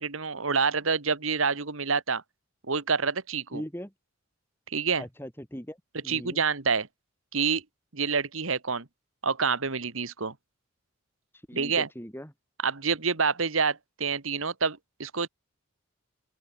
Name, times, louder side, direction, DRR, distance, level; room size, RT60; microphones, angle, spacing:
voice 1, 0.0-2.2 2.7-3.6 4.7-5.0 6.1-6.9 7.3-7.6 7.9-8.9 9.2-10.3 11.5-11.9 12.6-15.3, right 5 dB, 70° right, 1.7 m, -27 dB
voice 2, 3.5-3.9 5.0-5.8 6.0-6.4 11.5-12.3, equal, 10° left, 7.2 m, -39 dB
open air
head